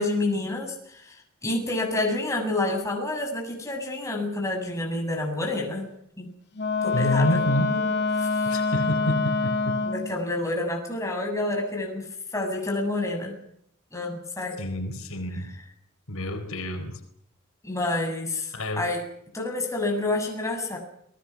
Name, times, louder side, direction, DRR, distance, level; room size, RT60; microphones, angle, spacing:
voice 1, 0.0-5.9 6.2-6.3 6.8-7.4 7.7-8.5 9.9-12.1 12.3-13.4 13.9-14.6 17.6-19.0 19.3-20.8, left 2 dB, 15° left, 1 dB, 7.4 m, -29 dB
Wind instrument woodwind instrument, 6.5-10.2, left 4 dB, 50° left, 2.6 m, -26 dB
voice 2, 6.9-7.8 8.4-9.8 14.6-15.5 16.1-17.0 18.5-18.8, left 1 dB, 80° left, 6 dB, 4.3 m, -28 dB
29.5 x 20.5 x 6.1 m, 0.72 s
head